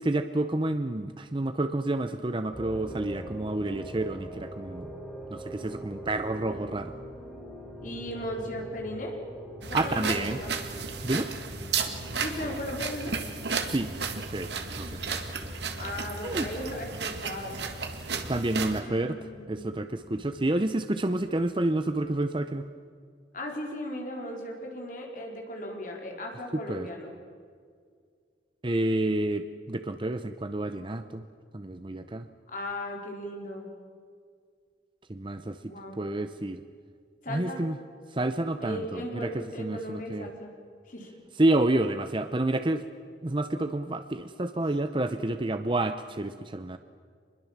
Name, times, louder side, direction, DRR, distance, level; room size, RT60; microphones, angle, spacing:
voice 1, 0.0-4.9 5.3-6.9 9.7-10.4 11.0-11.3 13.6-13.9 14.3-15.0 16.2-16.5 18.3-19.2 19.5-22.7 26.7-26.9 28.6-31.3 31.5-32.3 35.1-36.6 37.3-37.8 38.1-40.3 41.4-42.8 43.2-46.8, right 2 dB, 25° right, 9 dB, 0.7 m, -29 dB
sound 1, 2.5-22.0, right 1 dB, 5° left, 5.5 m, -45 dB
voice 2, 7.8-9.2 9.7-10.5 11.6-11.7 12.2-13.1 15.8-17.6 18.7-19.7 23.3-27.1 32.5-33.7 35.6-36.0 37.2-37.6 38.6-40.5 40.9-41.1, left 1 dB, 45° left, 1 dB, 4.5 m, -37 dB
sound 2, 9.6-18.8, right 5 dB, 65° right, 1.9 m, -34 dB
25.5 x 21.5 x 7.4 m, 2.1 s
head